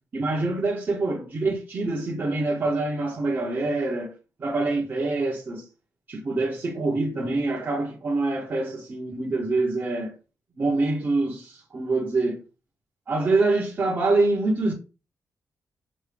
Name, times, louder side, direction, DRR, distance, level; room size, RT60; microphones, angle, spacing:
voice 1, 0.1-5.6 6.1-10.1 10.6-12.4 13.1-14.7, right 2 dB, 30° right, 0.9 m, -25 dB
6.2 x 2.6 x 3.3 m
wide cardioid pair, 180°, 6 cm